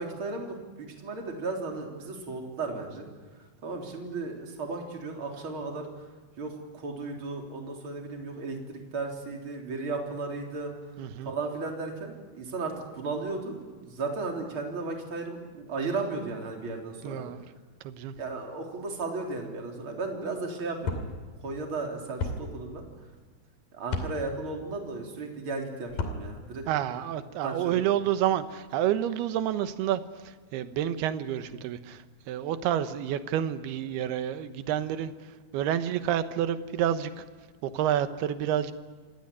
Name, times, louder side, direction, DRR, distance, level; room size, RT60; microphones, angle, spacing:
voice 1, 0.0-3.1 3.6-5.9 6.4-10.7 11.2-17.3 18.2-21.0 21.4-22.8 23.7-26.6 27.4-27.9, right 3 dB, 35° right, 2 dB, 4.0 m, -35 dB
voice 2, 11.0-11.3 17.0-17.4 17.8-18.1 26.7-37.2 37.6-38.7, right 10 dB, 85° right, 11 dB, 3.1 m, -29 dB
sound 1, 20.8-21.1 22.2-22.4 23.9-24.1 25.9-26.2, left 4 dB, 60° left, 4.3 m, -30 dB
27.0 x 19.5 x 9.8 m, 1.4 s
omnidirectional pair, 4.4 m